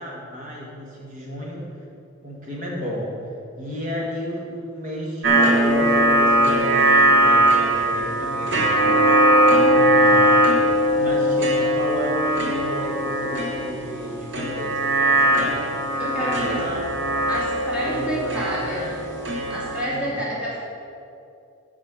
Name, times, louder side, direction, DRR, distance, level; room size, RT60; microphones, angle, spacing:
voice 1, 0.0-1.7 2.2-3.1 3.5-10.4 10.9-15.7 16.2-16.9 17.7-19.1 19.8-20.2, equal, 40° right, -3 dB, 2.1 m, -33 dB
sound 1, 5.2-19.8, right 1 dB, 60° right, 1.2 m, -20 dB
voice 2, 16.0-16.5 17.3-18.9 19.5-20.6, equal, 5° right, -9 dB, 2.3 m, -28 dB
8.7 x 5.0 x 7.6 m, 2.5 s
head